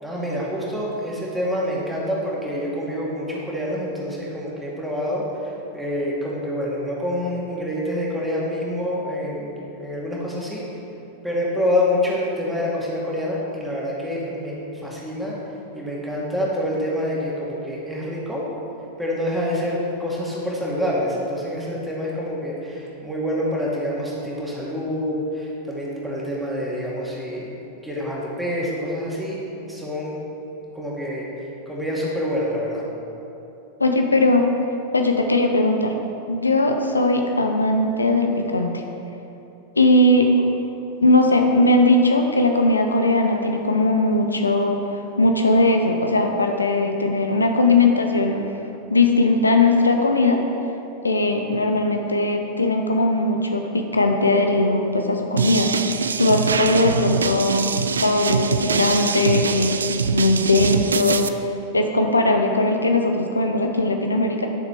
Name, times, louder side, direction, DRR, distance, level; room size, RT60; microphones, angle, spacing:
voice 1, 0.0-10.6 11.2-14.5 14.8-15.3 15.7-18.4 19.0-27.5 27.8-29.4 29.7-30.1 30.7-31.2 31.7-32.8, left 1 dB, 5° right, -6 dB, 2.3 m, -26 dB
voice 2, 33.8-34.4 34.9-35.9 36.3-38.8 39.8-40.3 41.0-44.8 45.2-48.4 48.9-50.4 51.0-59.8 60.1-61.3 61.7-64.5, left 2 dB, 80° left, 4 dB, 0.7 m, -19 dB
sound 1, 55.4-61.3, right 5 dB, 70° right, 0.3 m, -24 dB
11.0 x 6.6 x 4.7 m, 2.9 s
figure-of-eight pair, 90°, 0 cm